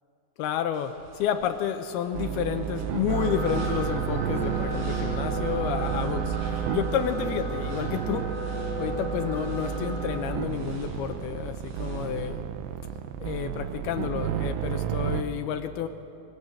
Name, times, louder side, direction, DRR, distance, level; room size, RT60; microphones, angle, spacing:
voice 1, 0.4-6.4 6.7-12.4 13.2-15.9, left 9 dB, 80° left, 8 dB, 2.4 m, -30 dB
sound 1, 0.7-12.1, right 1 dB, 65° right, 5.8 m, -45 dB
sound 2, 2.1-15.2, right 9 dB, 85° right, 3.0 m, -31 dB
sound 3, 3.1-10.2, left 1 dB, 40° right, 2.9 m, -36 dB
22.0 x 19.5 x 7.8 m, 2.7 s
omnidirectional pair, 5.1 m